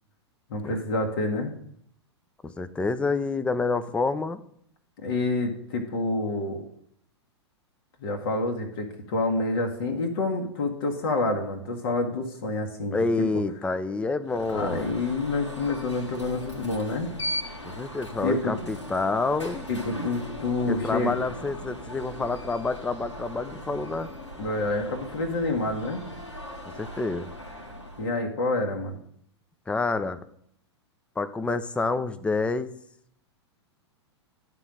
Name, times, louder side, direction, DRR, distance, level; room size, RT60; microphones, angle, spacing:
voice 1, 0.5-1.5 5.0-6.6 8.0-13.3 14.5-17.2 18.2-18.5 19.7-21.1 24.4-26.0 28.0-29.0, left 2 dB, 55° left, 3 dB, 1.5 m, -28 dB
voice 2, 2.4-4.4 12.9-14.9 17.6-19.7 20.7-24.1 26.8-27.3 29.7-30.2 31.2-32.7, left 3 dB, 10° left, 13 dB, 0.5 m, -28 dB
Alarm, 14.3-28.2, equal, 85° left, 2.1 m, -39 dB
10.5 x 4.0 x 7.4 m, 0.68 s
figure-of-eight pair, 100°, 15 cm